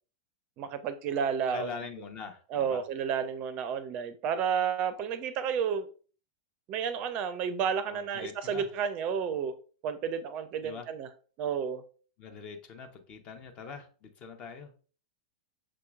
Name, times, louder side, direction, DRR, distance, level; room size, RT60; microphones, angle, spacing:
voice 1, 0.6-1.7 2.5-5.9 6.7-9.5 9.8-11.1 11.4-11.8, right 7 dB, 40° right, 0.4 m, -31 dB
voice 2, 1.5-2.8 7.9-8.7 10.6-10.9 12.2-14.7, left 5 dB, 35° left, 0.8 m, -43 dB
6.0 x 2.9 x 2.3 m
figure-of-eight pair, 100°, 3 cm